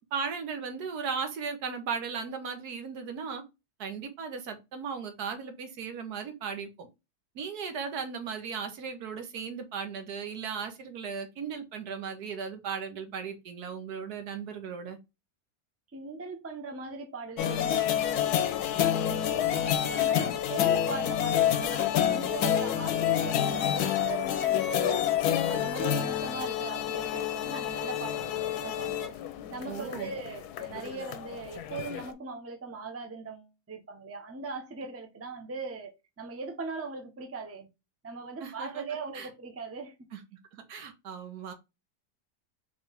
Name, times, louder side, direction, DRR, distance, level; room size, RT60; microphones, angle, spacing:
voice 1, 0.1-3.4 3.8-6.9 7.3-15.0 29.7-30.1 38.4-38.8 39.1-39.3 40.1-40.2 40.5-41.5, right 6 dB, 85° right, 1.5 m, -36 dB
voice 2, 15.9-18.6 19.0-25.0 25.4-29.2 29.5-37.7 38.0-39.9, right 4 dB, 20° right, 0.4 m, -40 dB
sound 1, 17.4-32.1, left 10 dB, 90° left, 1.1 m, -28 dB
4.2 x 3.4 x 3.4 m
omnidirectional pair, 1.6 m